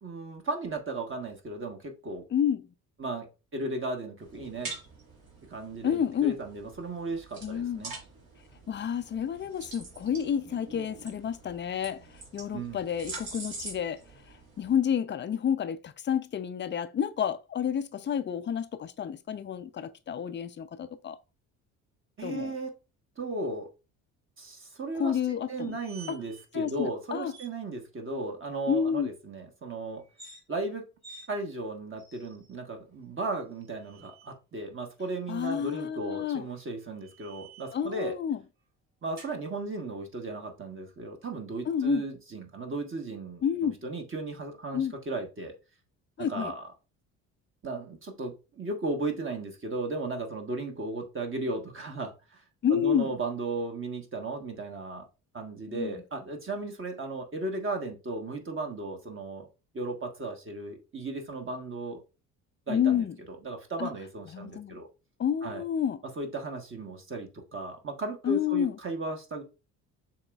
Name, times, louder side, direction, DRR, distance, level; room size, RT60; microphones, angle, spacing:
voice 1, 0.0-2.2 3.0-3.3 3.5-4.7 5.5-7.9 12.5-12.8 22.2-22.7 23.2-23.7 24.4-30.0 30.5-30.8 31.3-38.1 39.0-45.5 46.2-46.7 47.6-52.4 52.7-55.1 55.3-59.5 59.7-62.0 62.7-63.0 63.4-64.9 65.4-65.6 66.2-69.4, right 3 dB, 30° right, 1.2 m, -35 dB
voice 2, 2.3-2.6 5.8-6.4 7.4-7.9 8.7-14.0 14.6-21.2 22.2-22.5 24.9-25.8 26.1-26.2 26.5-27.3 28.7-29.1 35.3-36.4 37.7-38.4 41.7-42.0 43.4-43.8 44.7-44.9 46.2-46.5 52.6-53.1 55.7-56.0 62.7-63.1 63.8-63.9 64.3-64.8 65.2-66.0 68.2-68.8, left 8 dB, 25° left, 0.5 m, -29 dB
sound 1, 4.2-14.8, right 3 dB, 55° right, 1.8 m, -45 dB
sound 2, 25.5-26.4 26.7-26.9 27.3-27.5 30.0-30.4 31.0-31.3 32.0-32.5 33.5-34.3 36.2-37.8 39.2-39.4, right 4 dB, 85° right, 2.3 m, -51 dB
6.9 x 3.0 x 2.3 m
hypercardioid pair, 55°, 42 cm